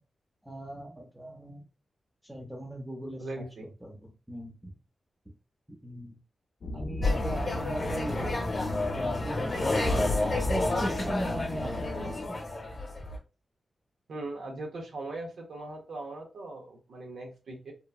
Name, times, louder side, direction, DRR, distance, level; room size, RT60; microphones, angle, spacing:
voice 1, 0.4-1.6 2.2-4.7 5.7-6.2 6.7-8.3 8.9-9.9 10.2-12.4, equal, 5° right, -1 dB, 0.5 m, -39 dB
voice 2, 3.2-3.7 14.1-17.7, right 2 dB, 80° right, 1 dB, 0.7 m, -39 dB
sound 1, 6.6-12.3, left 2 dB, 60° left, 0.3 m, -37 dB
sound 2, 7.0-13.2, left 2 dB, 35° left, 0.9 m, -30 dB
2.8 x 2.2 x 2.3 m, 0.32 s
wide cardioid pair, 135°, 0 cm